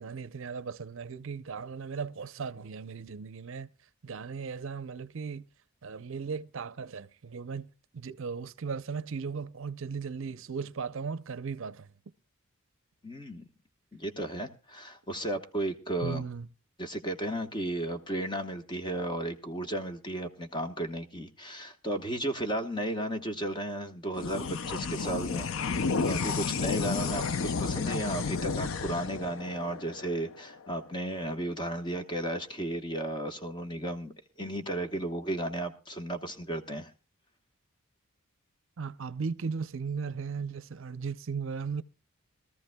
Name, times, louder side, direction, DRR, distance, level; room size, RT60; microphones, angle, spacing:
voice 1, 0.0-3.7 4.0-5.5 5.8-11.9 16.0-16.5 38.8-41.8, right 5 dB, 60° right, 0.6 m, -37 dB
voice 2, 13.0-13.4 13.9-16.2 16.8-36.9, right 1 dB, 20° left, 1.1 m, -34 dB
sound 1, 24.1-30.9, left 5 dB, 60° left, 0.5 m, -32 dB
22.0 x 14.0 x 2.2 m
head